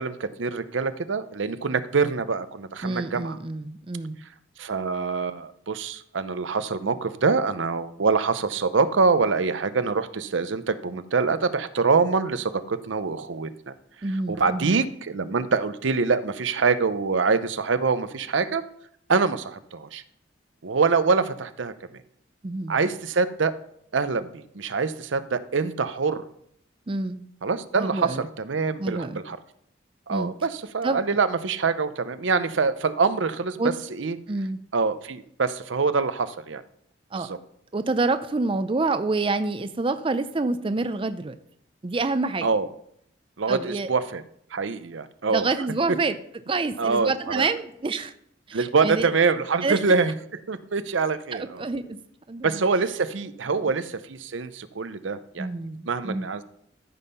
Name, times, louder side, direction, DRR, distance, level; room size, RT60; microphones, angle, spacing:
voice 1, 0.0-3.4 4.6-13.7 14.3-18.6 19.1-20.0 20.6-21.7 22.7-23.5 23.9-26.2 27.4-29.4 30.1-34.2 34.7-36.6 37.1-37.4 42.4-42.7 43.4-44.2 44.5-45.5 46.8-47.5 48.5-50.1 50.5-51.6 52.4-55.5 55.9-56.4, right 4 dB, 85° right, 12 dB, 0.7 m, -25 dB
voice 2, 2.8-4.2 14.0-14.8 22.4-22.8 26.9-27.2 27.8-28.3 28.8-29.2 30.1-30.3 30.8-31.0 33.6-33.7 34.3-34.6 37.1-37.3 37.7-41.4 41.8-42.5 43.5-43.9 45.3-46.2 46.5-48.1 48.5-49.1 49.6-49.9 51.3-52.0 52.3-52.6 55.4-56.3, right 3 dB, 30° right, 11 dB, 0.5 m, -27 dB
14.0 x 5.5 x 5.5 m, 0.69 s
head